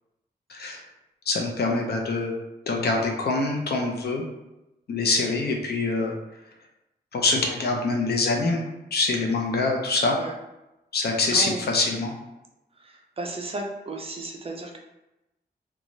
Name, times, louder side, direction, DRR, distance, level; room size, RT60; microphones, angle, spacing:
voice 1, 0.5-0.8 1.3-2.3 2.7-4.2 4.9-6.1 7.1-10.2 10.9-12.2, left 3 dB, 65° left, 1 dB, 0.5 m, -25 dB
voice 2, 11.3-11.6 12.8-14.8, right 2 dB, 35° right, 1 dB, 0.4 m, -34 dB
3.0 x 2.3 x 2.6 m, 0.95 s
wide cardioid pair, 165°, 18 cm